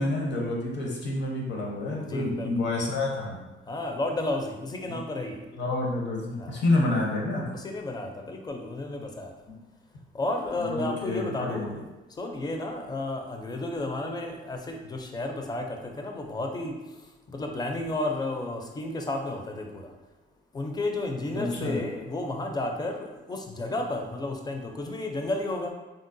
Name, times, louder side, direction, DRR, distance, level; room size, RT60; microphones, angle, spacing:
voice 1, 0.0-3.4 4.9-5.0 5.5-7.5 9.5-9.6 10.6-11.7 21.3-21.8, left 2 dB, 65° left, -2 dB, 0.8 m, -28 dB
voice 2, 2.0-2.5 3.7-5.4 6.4-6.6 7.5-9.3 10.1-11.8 12.2-16.8 17.3-19.9 20.5-25.7, left 2 dB, 20° left, 3 dB, 0.4 m, -32 dB
3.7 x 2.1 x 2.6 m, 1.1 s
cardioid pair, 90°, 20 cm